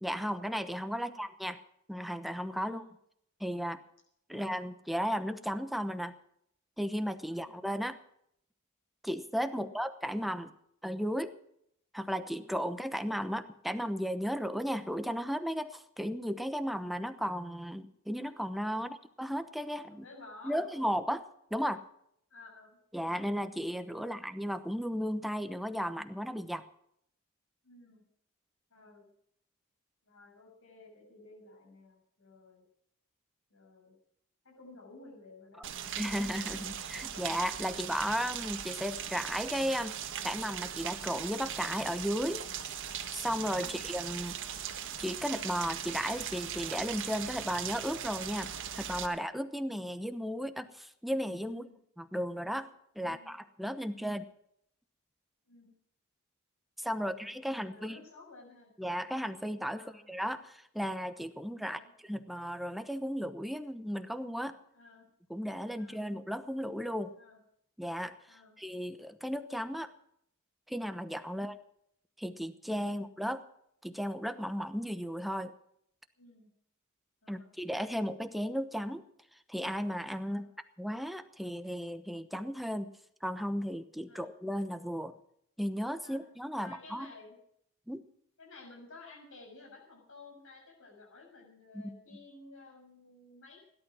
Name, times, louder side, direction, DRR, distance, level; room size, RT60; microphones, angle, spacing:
voice 1, 0.0-1.6 1.9-2.8 3.4-3.8 4.3-6.1 6.8-8.0 9.0-10.5 10.8-11.3 11.9-20.1 20.4-21.2 21.5-21.8 22.9-26.6 36.0-40.0 40.2-42.5 43.1-44.4 45.0-51.7 52.0-52.7 53.0-54.3 56.8-58.0 58.8-61.8 62.1-64.5 65.3-67.1 67.8-69.9 70.7-71.6 72.2-73.4 73.8-75.5 77.3-79.0 79.5-80.5 80.8-82.9 83.2-85.1 85.6-87.1 87.9-88.0 91.7-91.9, equal, ahead, 9 dB, 1.0 m, -35 dB
voice 2, 0.9-1.3 2.6-2.9 4.3-4.6 7.3-7.5 9.5-9.7 18.7-19.0 19.9-20.9 22.3-22.8 24.0-24.2 27.6-28.0 28.7-29.1 30.0-32.6 33.5-33.9 34.4-36.8 43.5-43.8 51.5-51.8 53.0-53.4 55.4-55.7 56.8-57.4 57.7-58.7 59.7-60.1 61.6-61.9 64.7-65.0 65.7-66.0 67.2-67.4 68.3-68.6 72.8-73.1 76.2-76.5 77.2-77.5 80.2-80.5 84.1-84.3 86.0-86.2 86.6-87.4 88.4-93.6, left 3 dB, 65° left, 0 dB, 6.7 m, -54 dB
Rain, 35.6-49.1, right 9 dB, 60° right, 1.5 m, -39 dB
17.5 x 11.5 x 6.2 m, 0.71 s
head